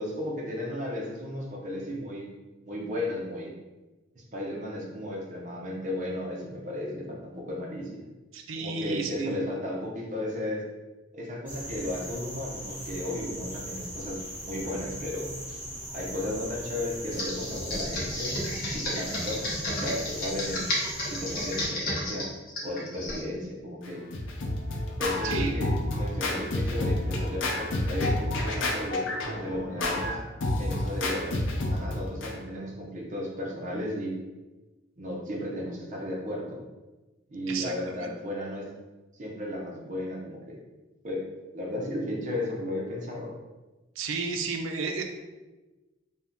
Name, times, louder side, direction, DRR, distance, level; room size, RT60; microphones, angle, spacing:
voice 1, 0.0-2.3 2.6-3.5 4.3-8.0 8.6-10.7 11.1-15.3 15.9-18.3 18.7-20.7 21.1-22.3 22.6-24.0 25.0-30.2 30.6-31.4 31.7-34.2 35.0-36.6 37.3-38.7 39.1-40.6 41.0-41.3 41.5-43.4, left 1 dB, 40° right, -1 dB, 0.6 m, -34 dB
voice 2, 8.3-9.5 25.2-25.5 37.5-38.1 44.0-45.0, right 4 dB, 85° right, 4 dB, 0.4 m, -32 dB
sound 1, 11.5-21.7, equal, 10° right, 1.0 m, -39 dB
Computer keyboard, 17.1-23.2, left 1 dB, 45° left, 0.8 m, -32 dB
Scratching (performance technique), 23.8-32.3, left 1 dB, 75° left, 0.5 m, -29 dB
2.6 x 2.2 x 3.5 m, 1.2 s
head